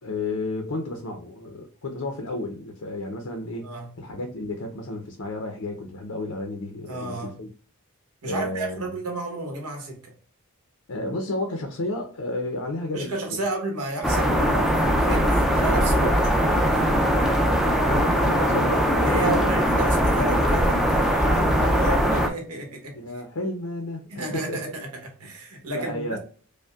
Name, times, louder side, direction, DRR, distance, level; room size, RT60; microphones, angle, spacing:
voice 1, 0.0-7.5 8.2-8.9 10.9-13.4 17.7-19.5 22.9-24.1 24.3-24.6 25.7-26.2, left 2 dB, 75° left, 0.6 m, -31 dB
voice 2, 6.9-7.4 8.2-10.1 12.9-17.0 19.0-23.0 24.1-26.2, right 2 dB, 85° right, 1.2 m, -32 dB
sound 1, 14.0-22.3, equal, ahead, 0.3 m, -21 dB
5.1 x 2.2 x 2.3 m
head